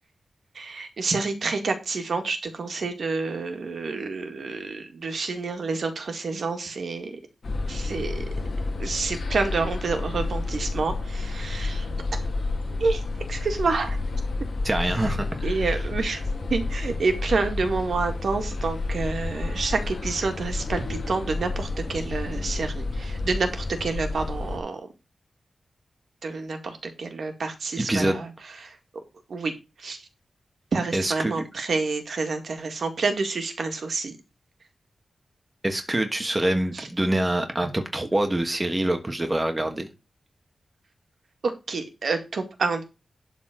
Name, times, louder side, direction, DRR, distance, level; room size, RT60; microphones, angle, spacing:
voice 1, 0.5-7.2 7.7-8.3 8.8-11.9 12.8-13.0 13.3-14.0 15.4-16.2 16.5-24.8 26.2-28.3 28.6-28.8 29.3-29.5 29.8-30.0 30.7-34.1 36.7-36.9 41.4-42.8, right 4 dB, 65° right, 6 dB, 2.0 m, -28 dB
sound 1, 7.4-24.6, left 3 dB, 45° left, 2.7 m, -30 dB
voice 2, 14.6-15.7 27.8-28.2 30.9-31.4 35.6-39.9, right 1 dB, 15° right, 5 dB, 1.3 m, -25 dB
11.5 x 4.2 x 6.1 m, 0.27 s
wide cardioid pair, 170°, 0 cm